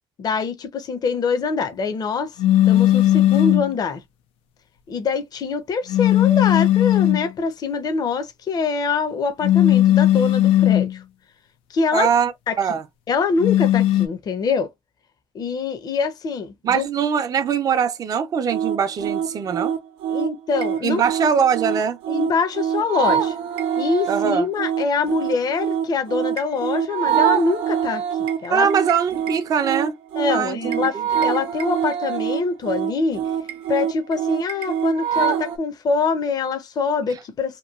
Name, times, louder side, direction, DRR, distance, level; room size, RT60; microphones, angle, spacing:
voice 1, 0.2-2.4 2.6-4.0 4.9-11.0 11.7-12.1 12.5-12.6 13.1-14.7 15.3-16.9 20.1-21.0 22.1-23.3 23.8-28.7 30.2-33.2 33.7-37.6, left 4 dB, 45° left, 0.7 m, -24 dB
sound 1, 2.4-3.7 5.9-7.3 9.4-11.0 13.4-14.1, left 13 dB, 85° left, 0.4 m, -17 dB
voice 2, 11.9-12.3 12.6-12.8 16.6-19.7 20.8-22.0 24.1-24.5 28.5-30.0 30.3-31.0, right 7 dB, 40° right, 0.5 m, -22 dB
sound 2, 18.5-35.6, right 9 dB, 80° right, 0.7 m, -25 dB
3.0 x 2.2 x 2.3 m
cardioid pair, 110°, 9 cm